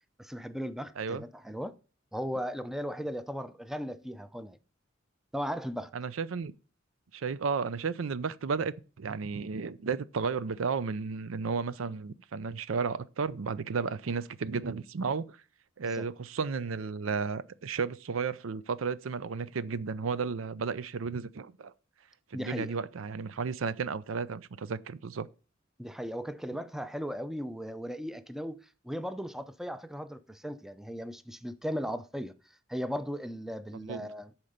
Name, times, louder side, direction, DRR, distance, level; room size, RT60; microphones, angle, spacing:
voice 1, 0.2-1.8 2.1-4.6 5.3-5.9 15.9-16.1 22.3-22.8 25.8-32.3 32.7-34.3, equal, ahead, 0.5 m, -37 dB
voice 2, 5.9-6.5 7.1-15.4 15.8-21.7 22.3-25.3 33.8-34.1, right 5 dB, 80° right, 0.5 m, -33 dB
10.5 x 4.4 x 5.1 m
head